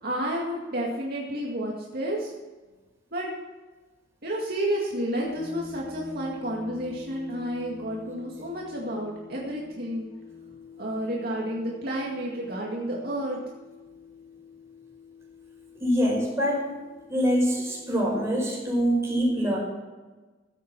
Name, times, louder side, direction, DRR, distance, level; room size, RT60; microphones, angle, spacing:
voice 1, 0.0-2.3 3.1-3.3 4.2-10.1 10.8-13.4, right 1 dB, 50° right, -3 dB, 2.2 m, -31 dB
sound 1, 5.2-18.4, left 5 dB, 65° left, 3.5 m, -46 dB
voice 2, 15.8-16.7 17.1-19.6, equal, 15° right, -3 dB, 5.0 m, -24 dB
15.0 x 8.5 x 6.1 m, 1.3 s
head